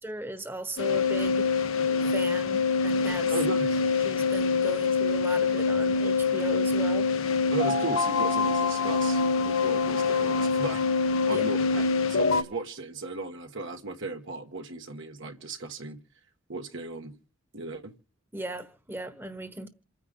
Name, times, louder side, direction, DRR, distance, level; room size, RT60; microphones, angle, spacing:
voice 1, 0.0-1.5 2.1-3.3 4.0-7.1 11.3-11.4 18.3-19.7, right 1 dB, 10° right, 1.3 m, -37 dB
sound 1, 0.8-12.4, left 4 dB, 70° left, 1.2 m, -25 dB
voice 2, 3.3-3.8 7.5-10.8 11.3-16.0 16.5-17.1 17.5-17.9, right 3 dB, 60° right, 1.4 m, -36 dB
28.0 x 9.8 x 3.9 m
head